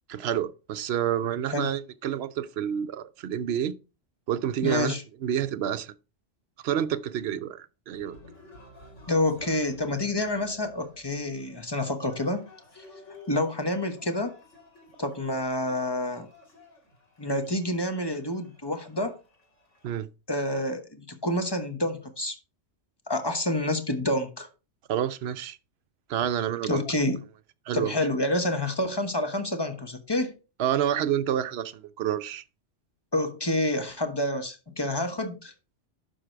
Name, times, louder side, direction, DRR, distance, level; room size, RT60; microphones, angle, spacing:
voice 1, 0.1-3.7 4.3-4.9 5.2-5.9 6.6-8.2 19.8-20.1 24.9-25.6 26.1-26.8 27.7-27.9 30.6-32.4, right 10 dB, 65° right, 0.8 m, -28 dB
voice 2, 4.6-5.0 9.1-12.5 12.7-12.8 13.3-14.3 15.0-16.3 17.2-19.1 20.3-22.4 23.1-24.5 26.6-27.2 27.7-30.3 33.1-35.5, left 1 dB, 20° left, 1.2 m, -28 dB
Cheering, 7.9-19.9, left 1 dB, 85° left, 3.1 m, -53 dB
11.5 x 4.6 x 4.5 m
omnidirectional pair, 1.2 m